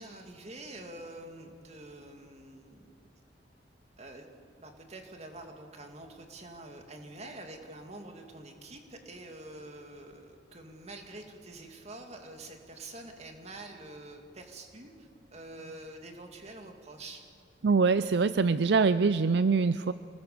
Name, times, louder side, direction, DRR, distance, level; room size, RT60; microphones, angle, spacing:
voice 1, 0.0-2.9 4.0-4.3 4.6-17.2, right 2 dB, 35° right, 4 dB, 2.5 m, -46 dB
voice 2, 17.6-19.9, right 4 dB, 65° right, 14 dB, 0.5 m, -24 dB
26.5 x 20.5 x 6.9 m, 2.3 s
head